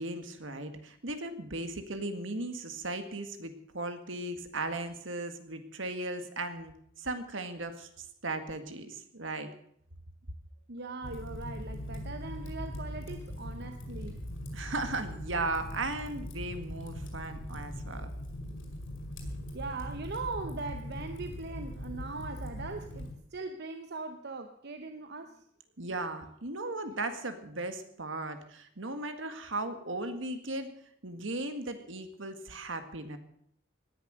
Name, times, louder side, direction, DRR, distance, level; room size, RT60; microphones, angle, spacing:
voice 1, 0.0-9.5 14.5-18.1 25.8-30.7 31.0-33.2, right 2 dB, 75° right, 8 dB, 1.9 m, -37 dB
voice 2, 10.7-14.2 19.5-25.4, right 3 dB, 55° right, 8 dB, 0.9 m, -40 dB
Fire, 11.0-23.1, equal, 85° left, 5.3 m, -40 dB
18.0 x 10.5 x 6.4 m, 0.70 s
head